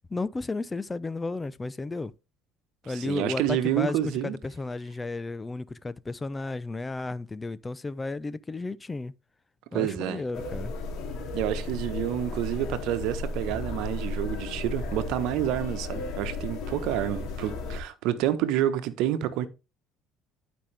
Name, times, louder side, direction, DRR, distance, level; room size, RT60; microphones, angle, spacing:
voice 1, 0.1-2.1 2.8-9.1 9.7-10.7, left 3 dB, 20° left, 0.6 m, -33 dB
voice 2, 2.9-4.4 9.7-10.2 11.3-19.5, right 12 dB, 75° right, 1.1 m, -28 dB
sound 1, 10.3-17.8, left 3 dB, 60° left, 2.8 m, -34 dB
12.0 x 5.3 x 3.4 m
supercardioid pair, 85°, 0 cm